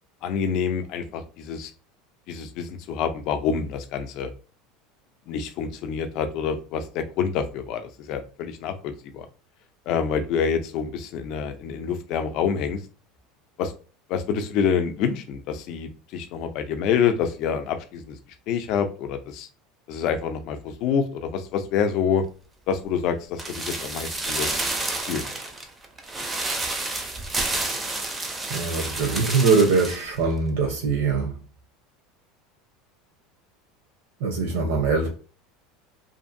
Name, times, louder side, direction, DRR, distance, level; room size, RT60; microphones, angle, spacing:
voice 1, 0.2-1.7 2.3-4.3 5.3-9.3 9.9-12.8 13.6-13.7 14.1-18.2 18.5-19.5 19.9-22.2 22.7-24.6 25.1-25.3, left 7 dB, 50° left, 0.4 m, -27 dB
sound 1, 23.4-30.1 30.3-30.4, right 2 dB, 15° right, 0.4 m, -30 dB
voice 2, 28.5-31.4 34.2-35.1, right 4 dB, 75° right, 0.7 m, -22 dB
2.6 x 2.5 x 2.6 m
supercardioid pair, 155°, 0 cm